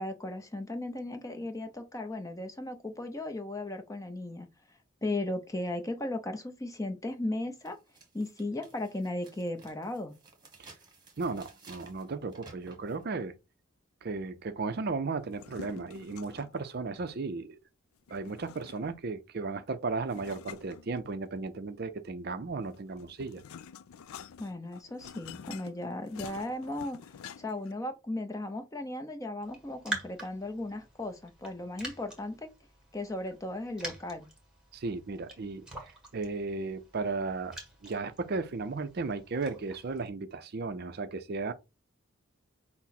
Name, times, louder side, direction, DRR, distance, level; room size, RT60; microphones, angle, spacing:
voice 1, 0.0-4.5 5.0-7.8 8.1-10.1 24.4-27.0 27.4-32.5 32.9-34.3, left 1 dB, 15° left, 0.6 m, -36 dB
sound 1, 7.0-7.1 7.6-13.0, right 3 dB, 20° right, 1.2 m, -56 dB
voice 2, 11.2-13.3 14.0-17.6 18.1-23.4 34.7-41.5, right 3 dB, 45° right, 0.5 m, -35 dB
sound 2, 15.3-16.6 18.1-19.1 20.1-21.5 22.6-27.7, left 7 dB, 75° left, 0.4 m, -48 dB
Raindrop, 29.4-40.1, right 1 dB, 5° right, 1.3 m, -45 dB
6.0 x 2.0 x 4.2 m
head